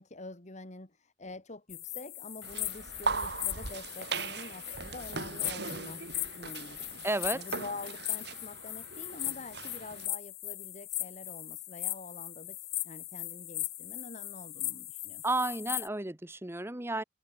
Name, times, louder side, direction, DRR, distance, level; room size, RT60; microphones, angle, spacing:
voice 1, 0.0-6.1 6.3-7.1 7.3-12.6 12.8-15.3, left 2 dB, 40° left, 2.3 m, -46 dB
sound 1, 1.7-15.9, left 16 dB, 60° left, 1.3 m, -39 dB
sound 2, 2.4-10.1, right 4 dB, 65° right, 3.3 m, -39 dB
voice 2, 7.0-7.4 15.2-17.0, right 2 dB, 15° right, 1.2 m, -32 dB
head